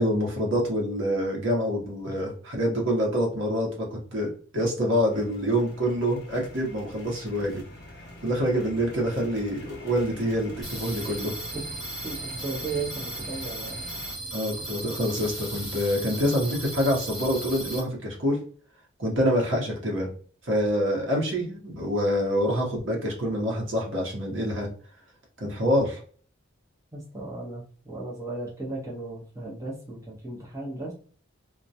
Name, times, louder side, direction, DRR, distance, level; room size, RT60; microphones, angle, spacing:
voice 1, 0.0-7.6 8.2-11.3 14.3-18.4 19.0-20.1 20.4-24.7 25.4-26.0, equal, 65° right, -1 dB, 0.8 m, -26 dB
sound 1, 5.1-14.1, left 1 dB, 50° left, 0.6 m, -44 dB
sound 2, 10.6-17.8, right 2 dB, ahead, 1.3 m, -36 dB
voice 2, 12.0-13.8 26.9-30.9, right 3 dB, 15° right, -5 dB, 0.7 m, -35 dB
2.2 x 2.1 x 2.7 m, 0.43 s
head